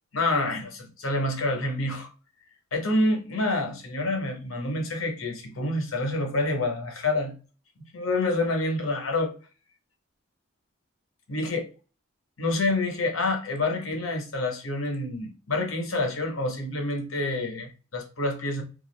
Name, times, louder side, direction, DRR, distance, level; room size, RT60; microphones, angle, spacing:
voice 1, 0.1-2.1 2.7-7.3 7.9-9.3 11.3-11.6 12.4-18.6, left 2 dB, 80° left, 3 dB, 0.8 m, -27 dB
2.4 x 2.4 x 3.1 m, 0.34 s
head